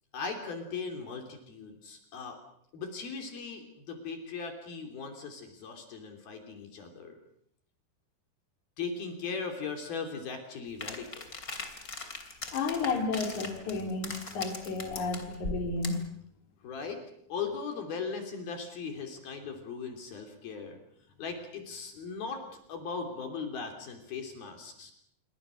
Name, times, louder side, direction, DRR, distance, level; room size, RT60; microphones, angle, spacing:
voice 1, 0.1-2.4 2.7-7.2 8.8-11.3 13.8-13.9 16.6-17.0 17.3-20.8 21.2-22.4 22.7-24.9, left 5 dB, 60° left, 4 dB, 5.0 m, -38 dB
sound 1, 10.8-16.1, left 3 dB, 25° left, 2.9 m, -40 dB
voice 2, 12.5-16.1, left 4 dB, 45° left, 3 dB, 4.6 m, -32 dB
28.0 x 24.0 x 6.5 m, 0.71 s
omnidirectional pair, 4.8 m